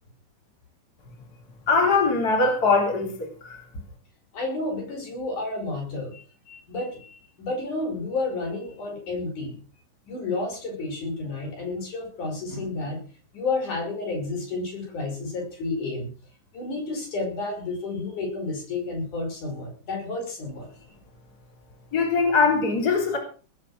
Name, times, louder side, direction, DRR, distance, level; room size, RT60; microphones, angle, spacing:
voice 1, 1.7-3.6 21.9-23.2, left 4 dB, 30° left, 3 dB, 4.0 m, -22 dB
voice 2, 4.3-9.6 10.1-13.0 13.3-16.1 16.5-20.7, left 3 dB, 75° left, 3 dB, 6.9 m, -31 dB
19.5 x 8.4 x 6.3 m, 0.38 s
omnidirectional pair, 3.5 m